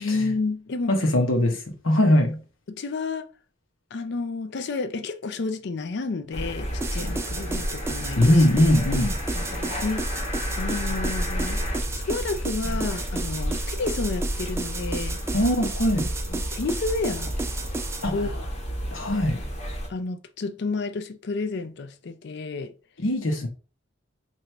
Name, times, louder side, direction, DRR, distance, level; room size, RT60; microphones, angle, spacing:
voice 1, 0.0-0.9 2.7-3.3 3.9-8.4 9.5-10.0 10.6-11.6 11.9-15.2 16.0-17.3 18.1-18.5 19.9-22.7, left 3 dB, 60° left, 0.4 m, -30 dB
voice 2, 0.9-2.4 8.2-9.2 15.3-16.1 18.0-18.3 18.9-19.4 23.0-23.5, left 1 dB, 85° left, 1.0 m, -21 dB
sound 1, 6.3-19.9, equal, 35° left, 0.9 m, -31 dB
sound 2, 6.8-18.1, right 3 dB, 15° right, 0.4 m, -33 dB
3.0 x 2.6 x 4.4 m
head